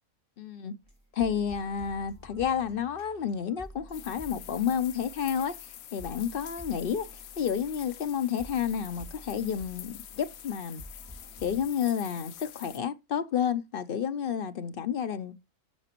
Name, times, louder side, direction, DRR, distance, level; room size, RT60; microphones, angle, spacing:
voice 1, 0.4-0.7 1.1-7.1 7.4-10.8 11.4-15.3, left 8 dB, 60° left, 0.6 m, -30 dB
sound 1, 0.8-11.7, equal, 10° right, 3.2 m, -50 dB
sound 2, 3.9-12.8, left 11 dB, 85° left, 1.1 m, -46 dB
9.8 x 6.8 x 2.9 m
omnidirectional pair, 1.4 m